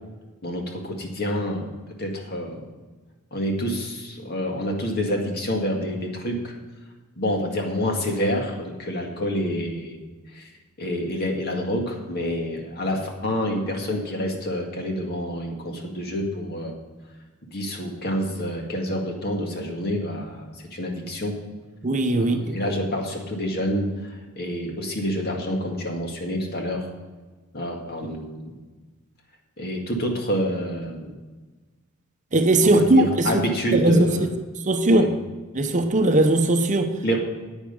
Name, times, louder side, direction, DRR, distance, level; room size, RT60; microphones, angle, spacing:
voice 1, 0.4-1.7 2.0-2.6 3.3-6.5 7.2-10.0 10.3-10.5 10.8-16.7 17.5-21.4 22.2-26.9 27.5-28.5 29.6-31.2 32.6-34.3 34.8-35.1 37.0-37.2, equal, 50° left, 2.0 m, -28 dB
voice 2, 21.8-22.6 32.3-34.3 34.7-35.1 35.5-36.9, right 2 dB, 35° right, 0.8 m, -19 dB
9.9 x 9.1 x 5.3 m
head